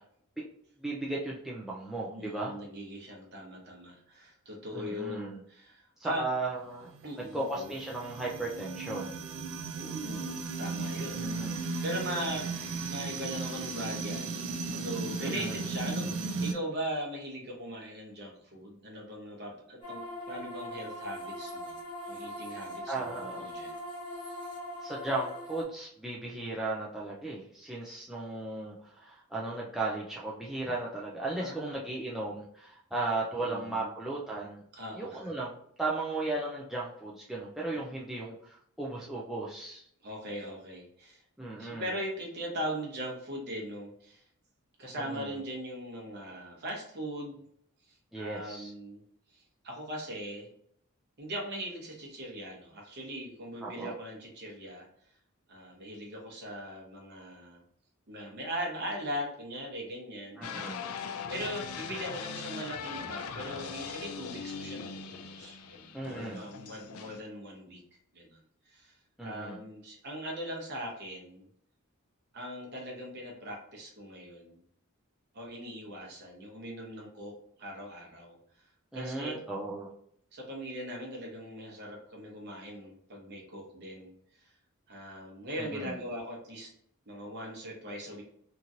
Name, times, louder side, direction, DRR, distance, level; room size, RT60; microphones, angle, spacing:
voice 1, 0.8-2.5 4.7-5.4 6.0-6.9 7.3-9.1 11.2-11.7 15.2-15.6 22.9-23.5 24.8-34.6 35.0-35.5 35.8-39.9 41.4-41.9 45.0-45.4 48.1-48.7 53.6-53.9 60.4-60.8 65.9-66.4 69.2-69.6 78.9-79.9 85.6-85.9, right 2 dB, ahead, -5 dB, 0.3 m, -36 dB
voice 2, 2.1-6.2 7.0-7.7 9.7-11.2 11.5-12.5 12.8-14.4 14.7-20.0 20.3-21.7 22.0-23.8 31.4-31.8 33.4-33.9 34.7-35.3 40.0-41.2 41.6-44.2 44.8-47.4 47.9-49.0 49.3-50.5 51.2-54.9 55.5-57.6 58.1-60.5 61.3-67.8 68.1-68.4 68.6-69.0 69.2-71.5 72.3-74.6 75.3-78.4 78.9-79.3 80.3-84.1 84.9-86.7 87.1-88.2, equal, 50° right, -1 dB, 0.9 m, -40 dB
sound 1, 6.7-16.5, right 4 dB, 75° right, 0.5 m, -36 dB
sound 2, 19.8-25.6, equal, 20° left, 1.0 m, -41 dB
sound 3, 60.4-67.2, left 6 dB, 75° left, 0.4 m, -40 dB
2.9 x 2.5 x 2.7 m, 0.67 s
head